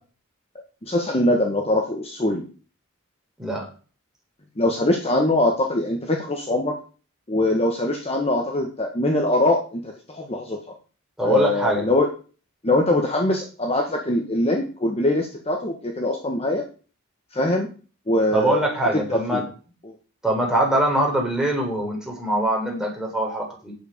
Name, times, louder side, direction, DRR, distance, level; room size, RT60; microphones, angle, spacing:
voice 1, 0.8-2.4 4.6-6.8 7.3-10.6 11.2-12.1 12.6-16.6 17.3-17.7 18.1-18.6 18.9-19.4 19.8-19.9, left 1 dB, 30° left, 2 dB, 1.3 m, -22 dB
voice 2, 11.2-11.9 18.3-19.4 20.2-23.7, right 1 dB, 5° right, -1 dB, 4.0 m, -23 dB
9.8 x 7.8 x 5.1 m, 0.37 s
head